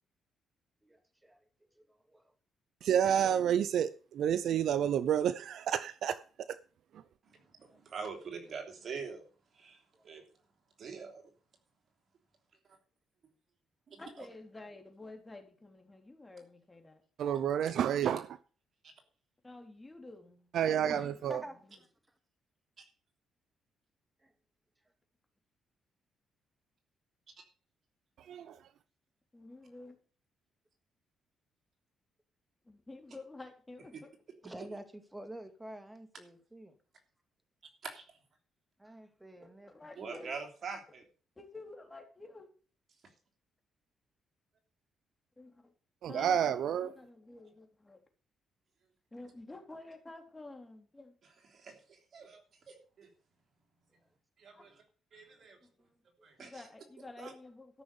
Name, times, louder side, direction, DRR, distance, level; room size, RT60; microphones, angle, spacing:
voice 1, 0.8-1.4 1.8-2.3 7.6-7.8 9.9-10.2 20.8-21.9 24.2-24.3 34.4-36.7 38.8-39.7 55.3-55.4, right 1 dB, 10° right, 2.2 m, -48 dB
voice 2, 2.8-6.2 6.5-6.6 17.2-18.4 20.5-21.4 28.3-28.6 46.0-46.9, right 9 dB, 70° right, 0.5 m, -29 dB
voice 3, 7.2-9.2 9.5-10.2 10.8-11.2 13.9-14.0 18.8-18.9 22.8-22.9 37.8-38.0 40.0-41.0 51.5-53.1 54.4-54.8 55.1-55.6 56.2-56.6 57.2-57.3, right 5 dB, 50° right, 3.1 m, -44 dB
voice 4, 14.0-17.0 19.4-20.5 20.8-21.2 21.6-21.8 29.3-30.0 32.6-34.1 39.4-40.3 41.4-42.5 45.4-45.7 46.1-46.4 46.8-48.0 49.1-51.1 54.5-54.6 55.6-56.0 56.4-57.8, left 2 dB, 15° left, 3.4 m, -50 dB
13.5 x 6.2 x 7.0 m
cardioid pair, 90°, 0 cm